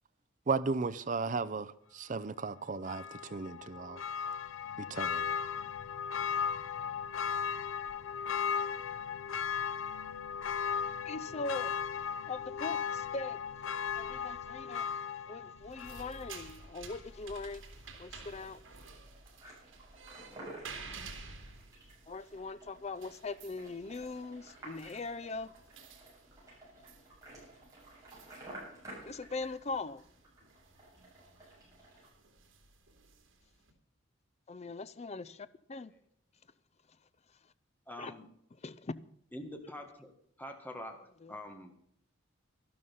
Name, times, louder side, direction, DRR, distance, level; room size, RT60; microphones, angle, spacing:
voice 1, 0.5-4.0 4.8-5.4, right 4 dB, 40° right, 0.5 m, -35 dB
Church bell, 2.8-16.5 16.9-17.0, left 7 dB, 80° left, 0.6 m, -36 dB
voice 2, 11.0-11.7 12.3-13.4 13.9-15.0 15.3-17.6 18.0-18.6 22.1-25.5 29.0-30.0 34.5-35.9 38.0-38.1 38.6-38.9 41.2-41.3, left 3 dB, 35° left, 0.5 m, -41 dB
sound 1, 15.6-33.7, right 4 dB, 75° right, 2.8 m, -53 dB
sound 2, 15.7-32.1, right 1 dB, 15° right, 7.1 m, -54 dB
voice 3, 37.9-38.3 39.3-40.1 40.4-41.0 41.3-41.7, left 1 dB, 10° left, 1.8 m, -45 dB
12.5 x 12.0 x 5.5 m
head